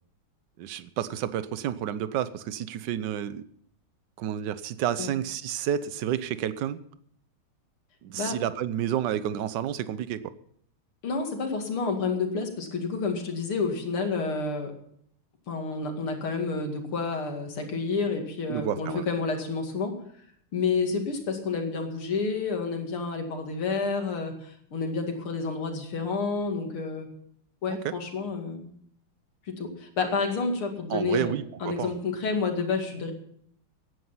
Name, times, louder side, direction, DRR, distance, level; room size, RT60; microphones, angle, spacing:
voice 1, 0.6-3.4 4.2-6.8 8.0-10.2 18.5-19.0 27.7-27.9 30.9-31.9, right 10 dB, 65° right, 14 dB, 1.3 m, -30 dB
voice 2, 11.0-14.7 15.5-19.9 20.5-27.1 27.6-28.7 29.5-31.3 31.6-33.1, left 4 dB, 85° left, 3 dB, 3.1 m, -29 dB
16.0 x 10.5 x 5.6 m, 0.65 s
omnidirectional pair, 2.3 m